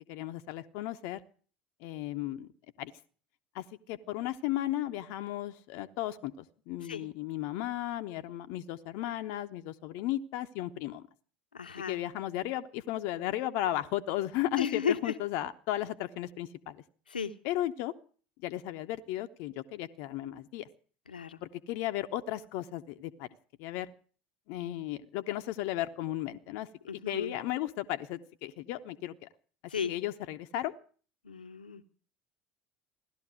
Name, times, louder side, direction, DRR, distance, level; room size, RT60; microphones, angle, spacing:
voice 1, 0.1-1.2 1.8-2.5 2.8-2.9 3.5-11.0 11.9-16.8 17.4-17.9 18.4-20.7 21.4-23.3 23.6-23.9 24.5-26.7 27.1-29.3 29.9-30.7, left 14 dB, 55° left, 9 dB, 1.0 m, -35 dB
voice 2, 11.5-12.0 14.6-15.1 17.1-17.3 21.1-21.4 26.9-27.4 29.7-29.9 31.2-31.8, left 7 dB, 80° left, 10 dB, 1.1 m, -34 dB
17.0 x 12.5 x 6.3 m, 0.43 s
figure-of-eight pair, 65°, 5 cm